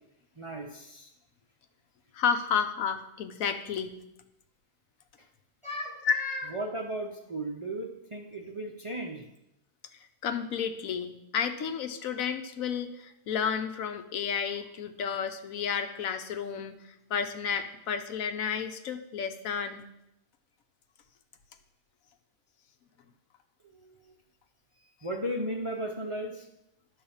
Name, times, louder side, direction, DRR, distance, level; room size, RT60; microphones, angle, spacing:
voice 1, 0.4-1.1 5.6-9.3 23.6-24.1 25.0-26.5, right 1 dB, 30° right, 1 dB, 0.6 m, -36 dB
voice 2, 2.1-4.0 6.0-6.1 10.2-19.8, left 7 dB, 70° left, 8 dB, 1.1 m, -31 dB
11.0 x 4.0 x 7.0 m, 0.84 s
omnidirectional pair, 1.6 m